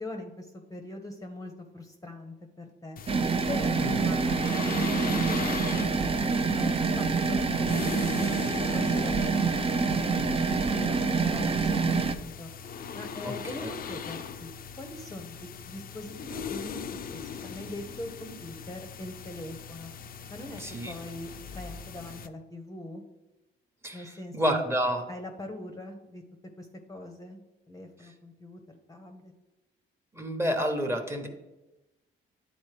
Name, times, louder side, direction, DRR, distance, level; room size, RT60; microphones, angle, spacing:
voice 1, 0.0-3.0 3.5-6.1 6.5-12.5 12.9-14.5 14.8-19.9 20.3-23.0 23.9-24.6 25.1-26.2 26.6-27.4 27.7-28.6 28.9-29.3, left 1 dB, 15° left, 4 dB, 0.8 m, -42 dB
sound 1, 3.0-22.3, left 7 dB, 45° left, 0.5 m, -40 dB
sound 2, 3.1-12.2, right 4 dB, 30° right, 0.5 m, -26 dB
voice 2, 20.6-20.9 23.8-25.0 30.1-31.3, equal, 15° right, 5 dB, 1.0 m, -29 dB
9.8 x 4.0 x 3.3 m, 1.0 s
cardioid pair, 90°, 20 cm